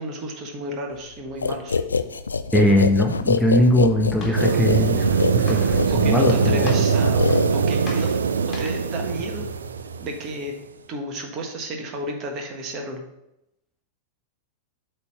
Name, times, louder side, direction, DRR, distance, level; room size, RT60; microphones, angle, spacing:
voice 1, 0.0-1.8 5.9-7.2 7.5-8.1 8.6-9.5 10.0-10.5 10.9-13.0, right 1 dB, 35° right, 3 dB, 1.4 m, -32 dB
sound 1, 1.4-7.9, left 4 dB, 75° left, 0.3 m, -24 dB
voice 2, 2.5-6.8, equal, 5° left, 1 dB, 0.7 m, -21 dB
Walk footsteps, 3.6-8.9, left 4 dB, 20° left, 2.0 m, -40 dB
sound 2, 4.4-10.3, right 6 dB, 70° right, 0.4 m, -22 dB
8.2 x 3.5 x 5.6 m, 0.86 s
figure-of-eight pair, 90°, 0 cm